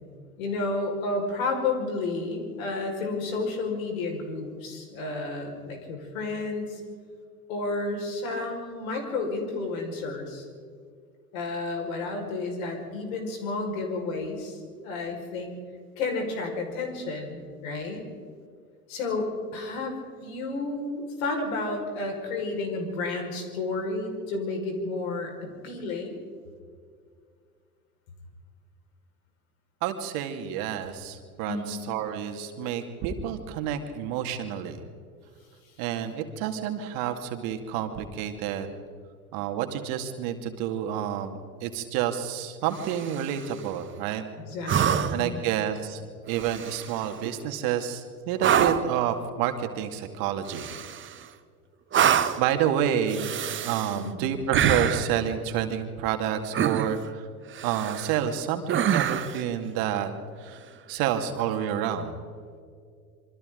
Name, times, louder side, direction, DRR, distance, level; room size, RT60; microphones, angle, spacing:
voice 1, 0.4-6.8 7.5-10.5 11.3-15.5 16.0-18.1 18.9-20.0 20.2-26.2 31.5-31.8 44.4-45.4 53.9-54.1, left 3 dB, 65° left, 2 dB, 5.5 m, -31 dB
voice 2, 29.8-34.8 35.8-38.7 39.3-44.2 45.1-46.0 46.3-50.7 51.0-51.1 52.4-53.3 53.6-57.3 57.6-60.1 60.4-60.6 60.9-62.1, right 9 dB, 50° right, 6 dB, 2.4 m, -29 dB
sound 1, 42.7-43.4 44.7-45.3 46.3-47.1 48.4-49.0 50.5-51.2 51.9-52.5 53.1-54.0 54.5-55.1 56.5-57.1 57.5-58.2 58.7-59.4 61.3-61.4, right 9 dB, 25° right, 1.2 m, -26 dB
27.5 x 24.5 x 4.0 m, 2.2 s
figure-of-eight pair, 80°, 45 cm